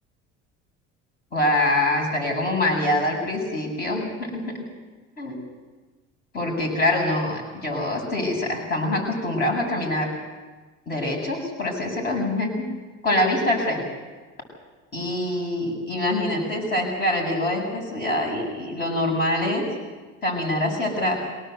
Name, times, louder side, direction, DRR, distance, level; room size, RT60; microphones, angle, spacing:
voice 1, 1.3-4.5 5.2-5.4 6.3-10.1 10.9-12.6 13.0-13.8 14.9-19.6 20.2-21.2, left 1 dB, 35° left, 1 dB, 7.5 m, -24 dB
24.0 x 18.0 x 8.0 m, 1.3 s
cardioid pair, 145°, 29 cm